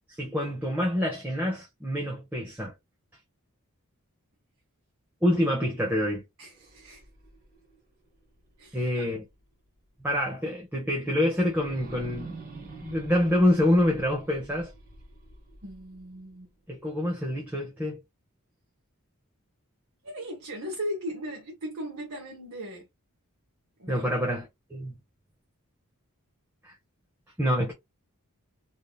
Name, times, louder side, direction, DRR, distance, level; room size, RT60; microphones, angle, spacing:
voice 1, 0.1-2.7 5.2-6.2 8.7-9.2 10.0-12.4 12.8-14.7 16.7-18.0 23.9-25.0 26.6-26.7 27.4-27.7, left 1 dB, 10° right, 0.7 m, -26 dB
voice 2, 6.4-7.1 8.6-9.2 15.6-16.5 20.0-22.9 23.8-24.1, equal, 75° right, 1.0 m, -38 dB
sound 1, 6.5-9.5 9.9-10.0 11.4-16.4, right 3 dB, 40° right, 1.3 m, -47 dB
3.3 x 2.7 x 2.2 m
head